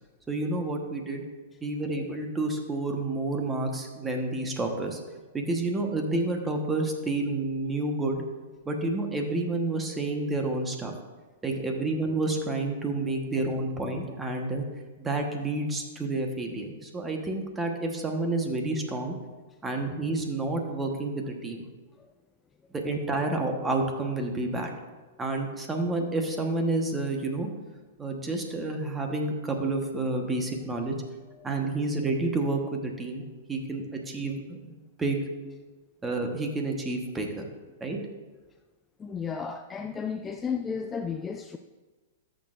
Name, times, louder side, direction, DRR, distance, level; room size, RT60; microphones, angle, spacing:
voice 1, 0.3-1.3 1.6-5.0 5.3-8.2 8.6-10.9 11.4-14.6 15.0-19.1 19.6-21.6 22.7-24.7 25.2-27.5 28.0-31.0 31.4-35.2 36.0-37.5 37.8-38.0, right 2 dB, 15° right, 2 dB, 1.2 m, -29 dB
voice 2, 39.0-41.6, left 6 dB, 15° left, 6 dB, 0.3 m, -33 dB
13.5 x 6.4 x 2.6 m, 1.3 s
hypercardioid pair, 130°, 0 cm